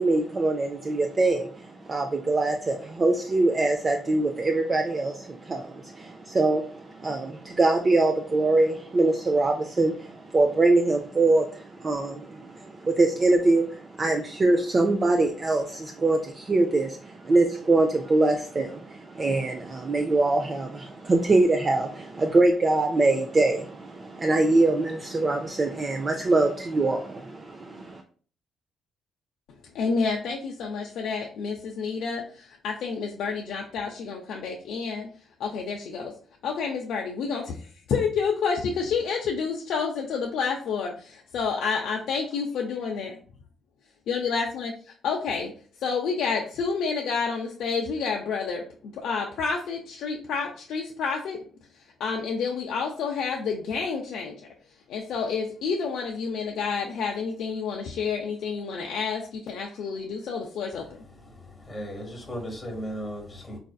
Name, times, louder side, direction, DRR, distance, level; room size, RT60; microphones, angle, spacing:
voice 1, 0.0-28.0, right 2 dB, 35° right, 3 dB, 0.4 m, -23 dB
voice 2, 29.7-35.1 35.4-36.1 36.4-43.1 44.1-45.5 45.8-51.4 51.7-54.4 54.9-60.9, left 5 dB, 80° left, 0 dB, 0.4 m, -29 dB
voice 3, 61.1-63.6, equal, 20° left, 1 dB, 1.0 m, -36 dB
4.0 x 2.5 x 2.3 m, 0.44 s
cardioid pair, 90°, 0 cm